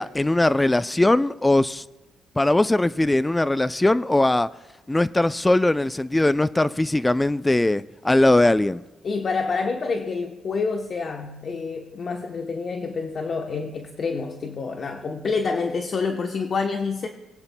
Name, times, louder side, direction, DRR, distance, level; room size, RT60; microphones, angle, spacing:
voice 1, 0.0-1.8 2.4-4.5 4.9-8.8, left 2 dB, 15° left, 0.4 m, -20 dB
voice 2, 9.0-17.1, left 4 dB, 50° left, 0.9 m, -27 dB
21.5 x 8.8 x 2.2 m
cardioid pair, 90°, 0 cm